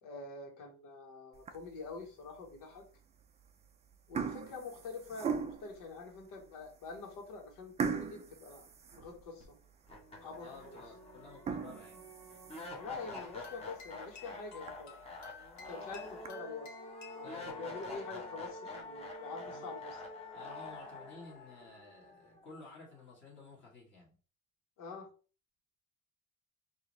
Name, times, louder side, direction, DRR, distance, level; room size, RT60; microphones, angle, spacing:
voice 1, 0.0-2.8 4.1-8.7 8.9-9.6 10.2-10.8 12.7-15.0 15.7-16.7 17.1-19.9 24.8-25.1, left 4 dB, 80° left, 1 dB, 1.6 m, -46 dB
sound 1, 1.3-1.9 2.4-2.6 3.4-3.7 3.9-5.8 6.4-6.5 6.9-7.0 7.8-9.5 10.0-10.1 10.5-10.6 11.3-12.9 13.3-13.4 13.8-13.9 14.3-14.4 14.7-14.8 15.7-16.3, right 6 dB, 20° right, 0.3 m, -39 dB
sound 2, 9.4-9.5 9.9-22.9, left 2 dB, 20° left, 0.9 m, -47 dB
voice 2, 10.4-12.1 17.2-17.6 19.4-19.7 20.3-24.1, left 3 dB, 35° left, -4 dB, 1.6 m, -53 dB
sound 3, 13.1-17.3, left 6 dB, 55° left, 1.3 m, -53 dB
4.7 x 2.7 x 3.1 m, 0.37 s
cardioid pair, 155°, 32 cm